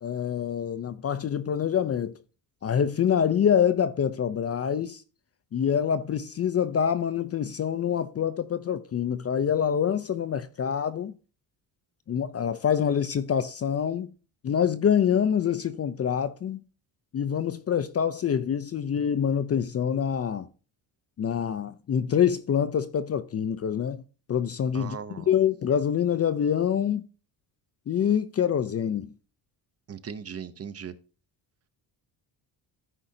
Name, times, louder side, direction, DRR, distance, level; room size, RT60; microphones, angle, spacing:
voice 1, 0.0-2.2 2.6-5.0 5.5-11.1 12.1-14.1 14.4-16.6 17.1-20.5 21.2-24.0 24.3-27.1 27.9-29.1, left 8 dB, 35° left, 0.4 m, -26 dB
voice 2, 24.7-25.3 29.9-30.9, right 7 dB, 35° right, 0.7 m, -38 dB
14.5 x 4.9 x 2.7 m
cardioid pair, 145°, 45 cm